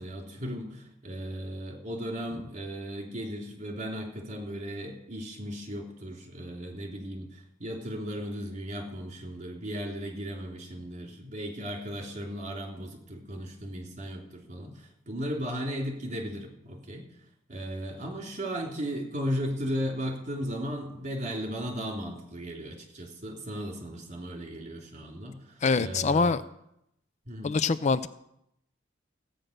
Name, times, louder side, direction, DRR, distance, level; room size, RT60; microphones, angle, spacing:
voice 1, 0.0-17.0 17.5-26.4 27.3-27.6, equal, 40° right, 1 dB, 3.0 m, -36 dB
voice 2, 25.6-26.4 27.4-28.1, left 4 dB, 35° left, 14 dB, 0.4 m, -24 dB
15.5 x 9.0 x 6.5 m, 0.79 s
head